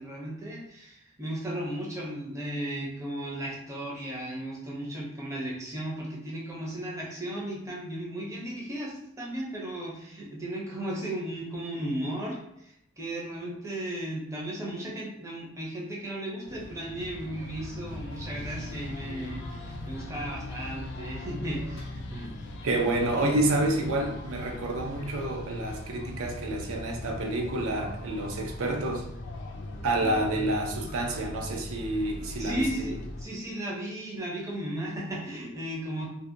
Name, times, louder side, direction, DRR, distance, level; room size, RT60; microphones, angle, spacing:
voice 1, 0.0-22.3 23.1-23.3 30.0-30.2 32.4-36.1, right 1 dB, 15° right, -4 dB, 0.4 m, -35 dB
sound 1, 16.4-33.3, left 2 dB, 55° left, 0.3 m, -39 dB
voice 2, 22.6-29.0 29.8-32.9, right 2 dB, 85° right, 2 dB, 0.4 m, -29 dB
2.6 x 2.1 x 2.5 m, 0.77 s
head